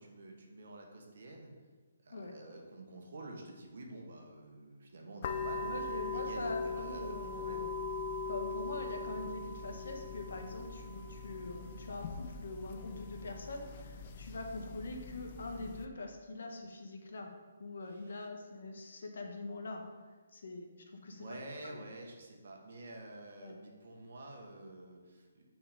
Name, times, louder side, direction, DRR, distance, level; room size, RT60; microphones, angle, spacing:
voice 1, 0.0-1.5 2.0-7.7 17.9-18.3 21.1-25.4, right 2 dB, 65° right, 1 dB, 1.2 m, -49 dB
sound 1, 5.2-15.8, left 3 dB, 35° left, 0.4 m, -41 dB
voice 2, 5.6-7.7 8.3-19.8 20.3-20.7 20.9-21.3 21.6-21.8 23.4-23.6, left 2 dB, 70° left, 3 dB, 1.0 m, -43 dB
6.1 x 3.6 x 5.0 m, 1.3 s
hypercardioid pair, 160°, 0 cm